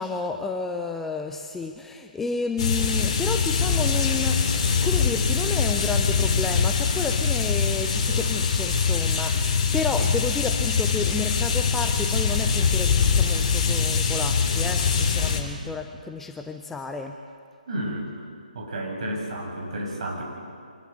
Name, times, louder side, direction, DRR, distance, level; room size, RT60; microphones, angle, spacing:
voice 1, 0.0-17.2, left 4 dB, 5° left, 5 dB, 0.6 m, -31 dB
sound 1, 2.6-15.4, left 5 dB, 35° left, 2.8 m, -23 dB
voice 2, 17.7-18.1 18.5-20.2, right 1 dB, 45° right, 1 dB, 6.5 m, -31 dB
25.0 x 19.5 x 8.0 m, 2.2 s
figure-of-eight pair, 145°, 5 cm